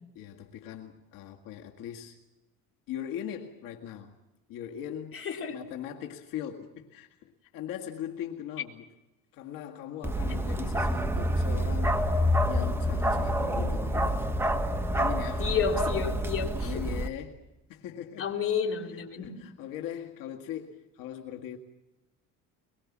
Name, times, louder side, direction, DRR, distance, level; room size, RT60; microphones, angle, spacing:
voice 1, 0.2-2.2 2.9-4.2 4.5-5.2 5.5-8.9 9.3-12.1 12.5-14.4 14.9-15.5 16.6-18.3 18.9-21.6, left 10 dB, 75° left, 2.1 m, -40 dB
voice 2, 5.1-5.6 15.4-16.9 18.2-19.4, left 6 dB, 40° left, 3.9 m, -31 dB
Bark, 10.0-17.1, equal, 5° right, 1.4 m, -27 dB
23.0 x 23.0 x 7.5 m
cardioid pair, 135°, 34 cm